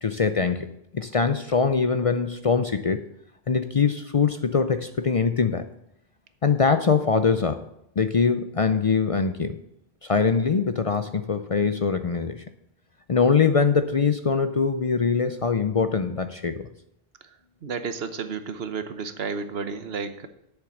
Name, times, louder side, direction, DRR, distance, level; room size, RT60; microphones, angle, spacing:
voice 1, 0.0-3.1 3.5-5.7 6.4-7.6 8.0-9.6 10.0-12.4 13.1-16.7, left 5 dB, 45° left, 9 dB, 0.5 m, -23 dB
voice 2, 17.6-20.3, right 5 dB, 75° right, 10 dB, 1.1 m, -32 dB
8.0 x 7.0 x 7.0 m, 0.79 s
omnidirectional pair, 1.0 m